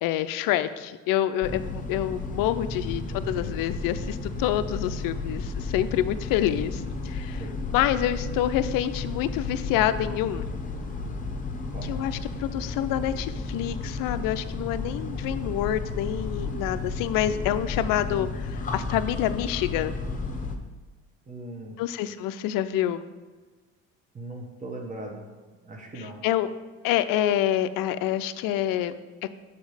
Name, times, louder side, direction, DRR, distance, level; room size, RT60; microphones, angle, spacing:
voice 1, 0.0-7.4 7.7-10.5 11.9-19.9 21.8-23.0 26.2-26.5 26.8-28.9, left 12 dB, 60° left, 12 dB, 0.5 m, -27 dB
sound 1, 1.4-20.6, left 3 dB, 20° left, 0.9 m, -33 dB
voice 2, 2.7-3.3 7.4-7.6 11.7-11.9 21.3-21.8 24.1-25.3 25.6-26.2, right 2 dB, 20° right, 1 dB, 1.1 m, -39 dB
6.2 x 4.3 x 4.9 m, 1.3 s
hypercardioid pair, 70°, 38 cm